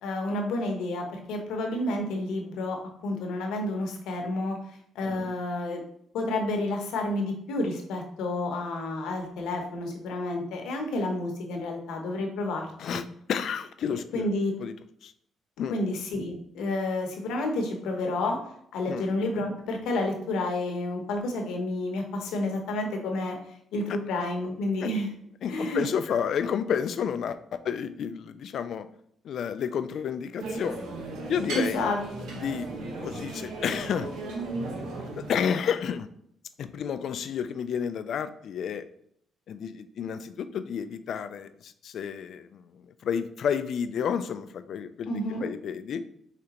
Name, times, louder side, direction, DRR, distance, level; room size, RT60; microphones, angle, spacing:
voice 1, 0.0-4.6 4.9-5.9 6.1-13.0 14.1-14.5 15.7-18.4 18.7-23.4 23.7-25.1 25.5-25.8 31.5-32.0 45.1-45.5, left 2 dB, 90° left, 3 dB, 0.9 m, -30 dB
voice 2, 5.0-5.3 12.8-14.3 14.6-14.7 15.0-15.1 15.6-15.8 18.9-19.1 25.4-28.9 29.2-30.8 31.3-31.8 32.4-32.7 33.0-34.1 35.2-36.1 36.6-38.8 39.5-46.0, left 7 dB, 65° left, 12 dB, 0.3 m, -31 dB
sound 1, 30.4-35.4, right 2 dB, 85° right, 1.0 m, -36 dB
5.0 x 3.3 x 2.9 m, 0.69 s
cardioid pair, 90°, 0 cm